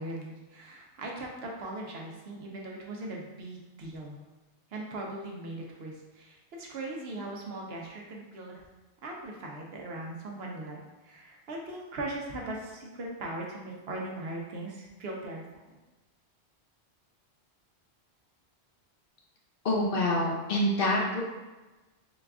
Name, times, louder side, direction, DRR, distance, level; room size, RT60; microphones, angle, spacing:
voice 1, 0.0-4.2 4.7-8.6 9.0-10.8 11.0-15.4, right 2 dB, 65° right, -1 dB, 0.9 m, -39 dB
voice 2, 19.6-21.2, left 1 dB, 60° left, -2 dB, 0.8 m, -26 dB
3.9 x 2.4 x 3.5 m, 1.1 s
omnidirectional pair, 1.2 m